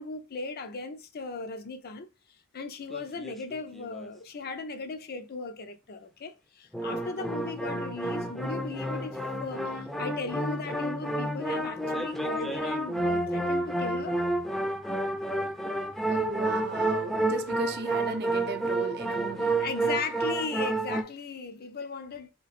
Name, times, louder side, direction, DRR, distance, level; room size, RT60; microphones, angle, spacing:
voice 1, 0.0-2.1 2.5-14.2 19.6-22.3, left 4 dB, 50° left, 0.5 m, -37 dB
sound 1, 2.9-4.1 6.7-21.0, right 1 dB, ahead, 0.5 m, -30 dB
voice 2, 15.7-19.6, right 4 dB, 50° right, 0.5 m, -36 dB
3.4 x 3.0 x 4.1 m
head